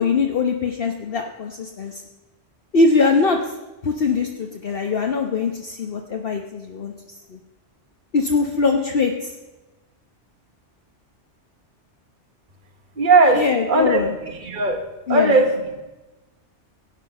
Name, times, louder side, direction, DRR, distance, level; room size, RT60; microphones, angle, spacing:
voice 1, 0.0-2.0 2.7-3.4 3.8-6.9 7.3-7.4 8.1-9.3 13.3-14.1 15.1-15.3, left 4 dB, 55° left, 3 dB, 1.1 m, -22 dB
voice 2, 13.0-14.8 15.1-15.8, right 2 dB, 45° right, 4 dB, 1.6 m, -18 dB
16.5 x 9.8 x 5.4 m, 1.1 s
omnidirectional pair, 1.2 m